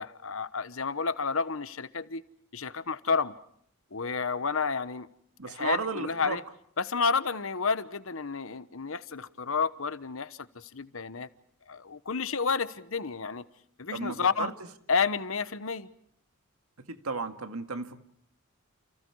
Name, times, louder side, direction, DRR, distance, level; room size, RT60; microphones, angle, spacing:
voice 1, 0.0-2.2 2.5-3.4 3.9-5.1 5.5-6.4 6.8-11.3 11.7-13.5 13.8-14.5 14.9-15.9, left 5 dB, 70° left, 1.1 m, -30 dB
voice 2, 5.4-6.4 13.9-14.5 16.8-18.0, right 4 dB, 85° right, 1.9 m, -34 dB
29.5 x 29.5 x 4.8 m
head